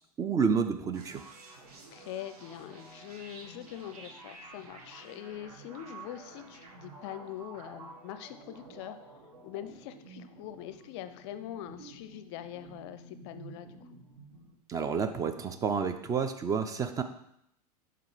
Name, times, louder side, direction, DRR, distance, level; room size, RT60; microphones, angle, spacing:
voice 1, 0.2-1.2 14.7-17.0, right 6 dB, 20° right, 9 dB, 0.3 m, -29 dB
sound 1, 0.9-14.5, right 3 dB, 70° right, 1.2 m, -51 dB
voice 2, 1.9-9.0 9.4-13.8, left 11 dB, 45° left, 11 dB, 0.4 m, -43 dB
5.7 x 3.7 x 4.6 m, 0.75 s
figure-of-eight pair, 85°, 20 cm